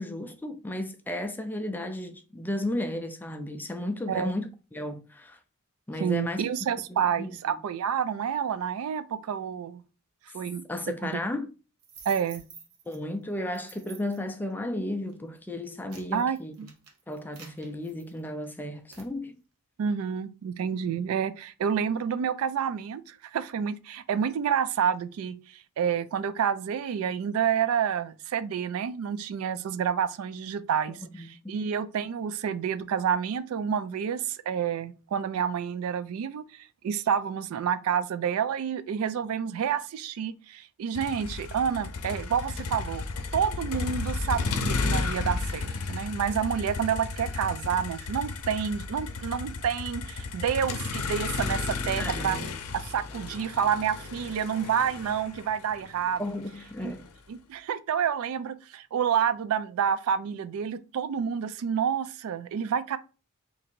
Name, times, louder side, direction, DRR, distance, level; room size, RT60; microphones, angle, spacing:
voice 1, 0.0-5.4 5.9-6.4 6.9-7.6 10.7-11.5 12.9-16.5 17.1-19.4 31.0-31.3 52.0-52.5 56.2-57.1, left 1 dB, 10° left, 0.3 m, -34 dB
voice 2, 6.0-9.8 10.3-10.6 11.0-11.1 12.1-12.4 16.1-16.7 19.8-43.1 43.3-52.4 52.7-56.2 56.8-56.9 57.3-63.0, right 7 dB, 70° right, 0.3 m, -29 dB
sound 1, 11.8-13.0 13.5-14.3 14.9-15.1 15.6-18.4 18.9-19.1, right 5 dB, 85° right, 0.9 m, -49 dB
Motor vehicle (road), 40.9-57.1, left 4 dB, 85° left, 0.6 m, -33 dB
2.9 x 2.6 x 4.3 m
head